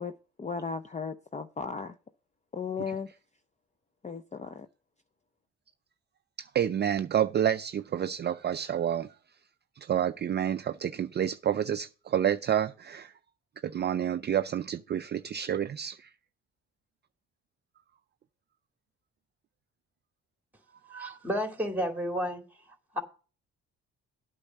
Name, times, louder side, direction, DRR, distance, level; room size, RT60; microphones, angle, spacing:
voice 1, 0.0-2.0 2.5-3.1 4.0-4.7, left 5 dB, 25° left, 0.6 m, -36 dB
voice 2, 6.5-9.1 9.8-13.1 13.6-16.1, right 9 dB, 35° right, 0.4 m, -29 dB
voice 3, 20.9-22.4 22.9-23.0, equal, 5° right, 2.2 m, -31 dB
8.5 x 5.5 x 7.2 m
cardioid pair, 90°, 30 cm